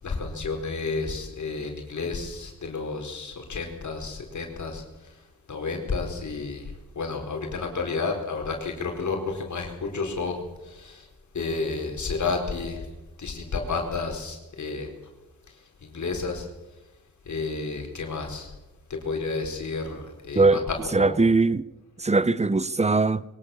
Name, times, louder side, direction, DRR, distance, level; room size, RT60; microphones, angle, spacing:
voice 1, 0.0-11.1 11.3-12.9 13.2-14.9 15.5-16.5 17.2-18.5 18.9-21.2, left 4 dB, 55° left, 4.4 m, -31 dB
voice 2, 20.3-20.7 20.9-21.6 22.0-23.2, right 3 dB, 20° right, 0.8 m, -21 dB
22.0 x 18.0 x 7.1 m
cardioid pair, 80°, 35 cm